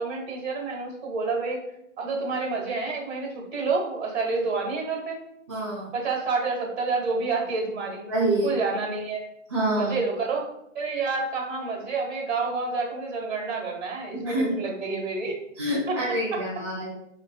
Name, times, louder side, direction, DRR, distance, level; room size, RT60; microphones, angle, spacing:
voice 1, 0.0-1.6 2.0-5.2 5.9-8.0 8.4-9.2 9.8-10.5 10.7-15.4 15.9-16.0 16.3-16.4, right 4 dB, 55° right, 0 dB, 1.3 m, -28 dB
voice 2, 5.5-5.9 8.1-8.5 9.5-9.9 14.2-14.6 15.6-16.9, right 1 dB, 25° right, -6 dB, 0.4 m, -26 dB
4.4 x 2.8 x 2.2 m, 0.77 s
figure-of-eight pair, 130°, 39 cm